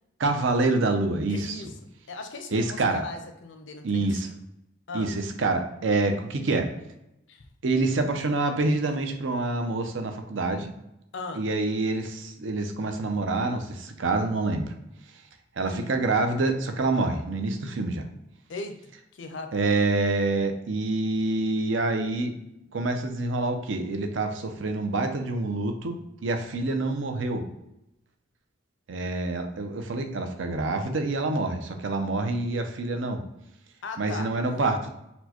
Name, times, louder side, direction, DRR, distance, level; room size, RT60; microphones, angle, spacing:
voice 1, 0.2-1.6 2.5-3.0 3.8-4.3 4.9-6.7 7.6-10.7 11.3-14.7 15.6-18.0 19.5-22.3 22.7-27.4 28.9-33.2 34.0-34.9, right 2 dB, 80° right, 6 dB, 0.5 m, -26 dB
voice 2, 1.3-4.3 4.9-5.1 7.3-7.5 11.1-11.4 15.6-16.0 18.5-18.8 19.1-19.5 33.8-34.6, left 3 dB, 75° left, 7 dB, 0.5 m, -38 dB
4.2 x 2.2 x 2.9 m, 0.85 s
head